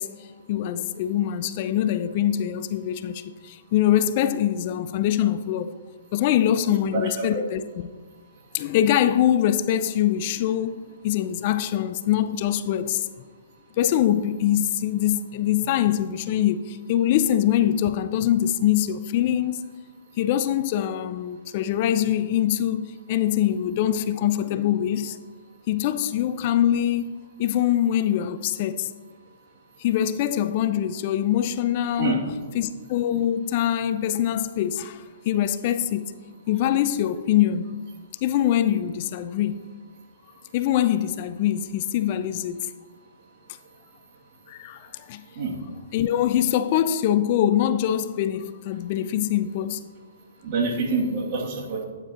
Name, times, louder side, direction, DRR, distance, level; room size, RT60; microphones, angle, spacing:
voice 1, 0.0-5.7 6.1-7.9 8.5-10.8 11.0-13.1 13.8-19.6 20.2-25.2 25.7-28.9 29.8-32.2 32.5-36.1 36.5-37.7 38.2-39.6 40.5-42.6 44.5-45.2 45.9-49.8, left 11 dB, 45° left, 0.4 m, -23 dB
voice 2, 6.9-7.4 32.0-32.2 45.4-45.5 50.4-51.8, right 3 dB, 45° right, 2.3 m, -26 dB
12.0 x 9.0 x 2.9 m
hypercardioid pair, 135°, 0 cm